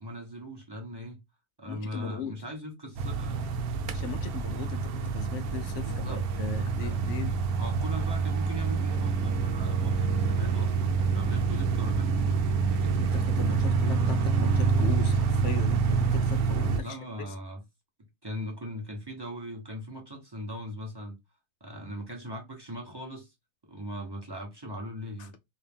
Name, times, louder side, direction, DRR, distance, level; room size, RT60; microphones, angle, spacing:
voice 1, 0.0-1.2 1.6-3.4 5.8-12.9 16.8-17.6 18.2-21.2 21.6-23.3 23.6-25.3, equal, 20° right, 0.9 m, -40 dB
voice 2, 1.7-2.3 3.9-7.5 13.0-17.3 25.2-25.3, left 7 dB, 65° left, 0.8 m, -39 dB
sound 1, 3.0-16.8, right 5 dB, 80° right, 1.1 m, -27 dB
2.9 x 2.8 x 3.5 m
omnidirectional pair, 1.6 m